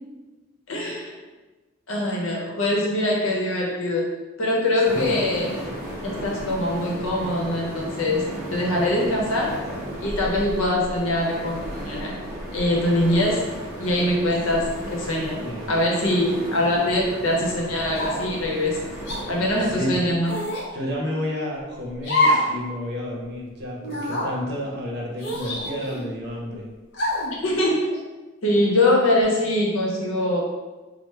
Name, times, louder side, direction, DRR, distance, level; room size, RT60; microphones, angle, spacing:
voice 1, 0.7-1.2 1.9-4.1 4.4-5.5 6.0-9.6 10.0-12.2 12.5-13.5 13.8-15.4 15.7-18.9 19.3-20.4 27.3-28.0 28.4-30.4, left 1 dB, 90° left, -2 dB, 0.8 m, -23 dB
sound 1, 4.8-20.0, equal, 5° right, 1.0 m, -34 dB
sound 2, 17.9-18.3 19.0-19.2 20.2-20.7 22.0-22.5 22.9-23.0 23.8-24.3 25.2-26.1 26.9-27.3, left 1 dB, 55° left, 0.7 m, -25 dB
voice 2, 19.7-20.0 20.7-26.7, left 1 dB, 55° right, -2 dB, 0.6 m, -30 dB
3.2 x 2.0 x 3.2 m, 1.2 s
head